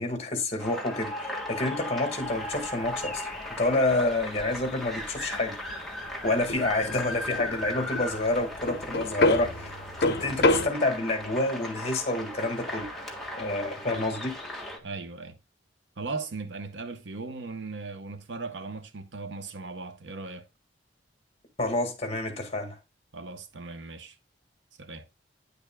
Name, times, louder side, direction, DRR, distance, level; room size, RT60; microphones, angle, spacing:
voice 1, 0.0-3.2 3.6-5.6 6.2-12.9 13.4-14.4 21.6-22.8, left 2 dB, 35° left, 1.7 m, -28 dB
sound 1, 0.6-14.8, left 1 dB, ahead, 1.5 m, -37 dB
sound 2, 2.2-10.7, left 2 dB, 60° left, 0.7 m, -29 dB
voice 2, 14.8-15.4 16.0-20.4 23.1-24.2 24.8-25.0, right 3 dB, 80° right, 0.9 m, -38 dB
9.6 x 6.9 x 2.2 m
head